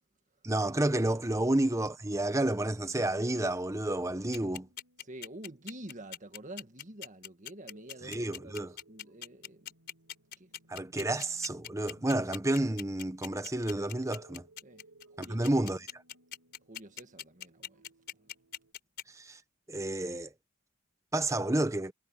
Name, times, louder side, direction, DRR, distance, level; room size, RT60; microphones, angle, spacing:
voice 1, 0.4-4.7 8.0-8.8 10.7-14.4 15.2-15.9 19.2-19.4 19.7-20.3 21.1-21.9, right 1 dB, 15° right, 0.9 m, -30 dB
sound 1, 3.9-18.7, right 2 dB, 90° right, 5.7 m, -64 dB
sound 2, 4.3-19.0, left 10 dB, 50° left, 4.6 m, -42 dB
voice 2, 5.0-9.7 10.4-10.5 14.6-14.8 15.1-15.6 16.7-17.8, right 1 dB, 35° right, 1.8 m, -48 dB
head